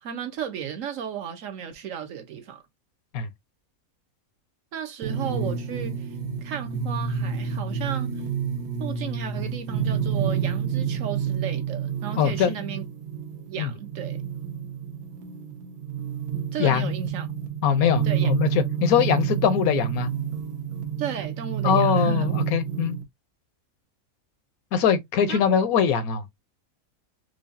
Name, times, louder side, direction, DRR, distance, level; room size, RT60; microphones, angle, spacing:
voice 1, 0.0-2.6 4.7-6.1 6.4-8.2 8.8-12.8 13.5-14.2 16.5-17.3 18.0-18.3 21.0-22.3 25.3-25.4, right 8 dB, 70° right, 1.2 m, -34 dB
sound 1, 5.0-23.0, right 7 dB, 85° right, 1.3 m, -29 dB
voice 2, 12.2-12.5 13.6-13.7 16.6-16.9 17.6-20.1 21.6-23.0 24.7-26.2, left 8 dB, 85° left, 1.2 m, -22 dB
4.8 x 2.4 x 2.6 m
omnidirectional pair, 1.5 m